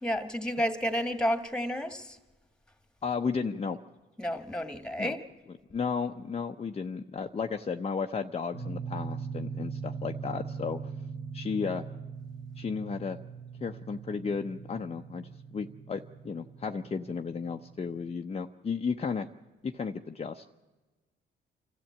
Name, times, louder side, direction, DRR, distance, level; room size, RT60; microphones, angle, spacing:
voice 1, 0.0-2.2 4.2-5.2, equal, 5° left, 9 dB, 1.8 m, -31 dB
voice 2, 3.0-3.8 5.0-5.2 5.7-10.8 11.3-11.8 12.6-13.2 13.6-19.3 19.6-20.5, left 5 dB, 30° left, 4 dB, 0.8 m, -34 dB
sound 1, 8.5-18.1, right 5 dB, 15° right, 1.3 m, -41 dB
26.5 x 13.5 x 8.6 m, 1.2 s
cardioid pair, 90°, 20 cm